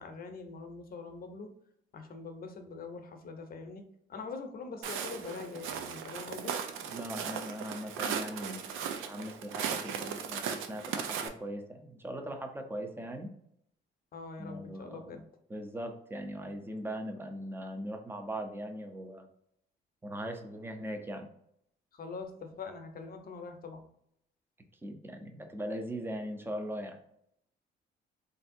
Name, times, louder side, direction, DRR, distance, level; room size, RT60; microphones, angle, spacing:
voice 1, 0.0-1.5 1.9-3.8 4.1-6.6 14.1-15.2 21.9-23.8, left 4 dB, 50° left, 5 dB, 0.7 m, -43 dB
Walk footsteps, 4.8-11.3, right 7 dB, 85° right, 0.4 m, -37 dB
voice 2, 6.9-13.3 14.4-15.2 15.5-19.3 20.0-21.3 24.8-27.0, equal, 10° right, 5 dB, 0.5 m, -40 dB
3.3 x 2.6 x 2.6 m, 0.73 s
cardioid pair, 90°, 20 cm